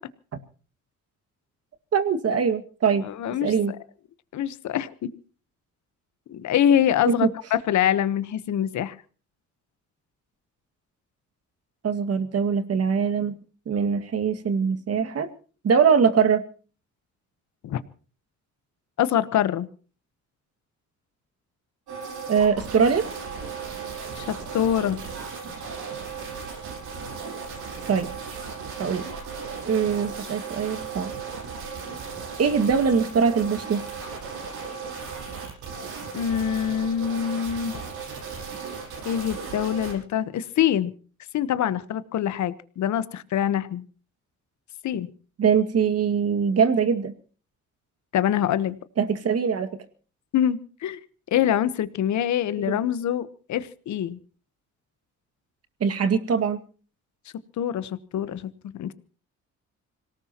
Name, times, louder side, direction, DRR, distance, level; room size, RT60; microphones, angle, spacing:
voice 1, 1.9-3.0 3.4-3.7 7.1-7.3 11.8-13.4 13.7-15.3 15.6-16.4 22.3-23.1 27.9-28.1 28.8-29.1 29.7-31.1 32.4-33.8 45.4-47.1 49.0-49.7 52.7-52.8 55.8-56.6, right 6 dB, 55° right, 8 dB, 2.1 m, -22 dB
voice 2, 3.0-3.8 4.3-5.1 6.3-8.9 17.6-17.8 19.0-19.7 24.2-25.0 36.1-37.8 39.0-40.9 41.3-43.8 44.8-45.1 48.1-48.8 50.3-51.0 51.3-54.2 57.6-58.9, left 10 dB, 70° left, 14 dB, 1.1 m, -25 dB
sound 1, 21.9-39.9, right 5 dB, 80° right, 7.5 m, -36 dB
26.0 x 18.0 x 3.0 m, 0.39 s
cardioid pair, 90°, 30 cm